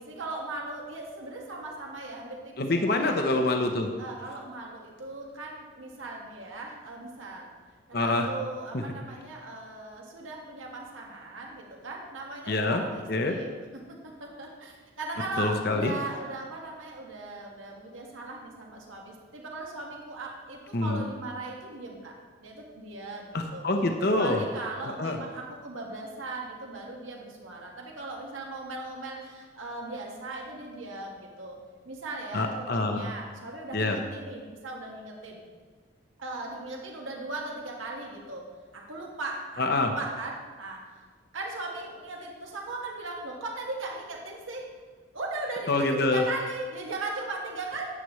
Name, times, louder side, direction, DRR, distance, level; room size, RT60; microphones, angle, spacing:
voice 1, 0.0-3.2 4.0-7.5 7.9-22.1 22.4-23.7 24.1-31.6 31.8-35.4 36.2-38.5 38.7-40.8 41.3-44.7 45.1-47.9, right 2 dB, 80° right, -1 dB, 1.7 m, -38 dB
voice 2, 2.6-3.9 7.9-8.3 8.7-8.8 12.5-12.8 13.1-13.3 15.4-15.9 20.7-21.0 23.3-24.4 24.9-25.2 32.3-33.1 33.7-34.0 39.6-39.9 45.7-46.2, left 2 dB, 50° left, 4 dB, 0.8 m, -26 dB
11.0 x 8.4 x 3.2 m, 1.5 s
head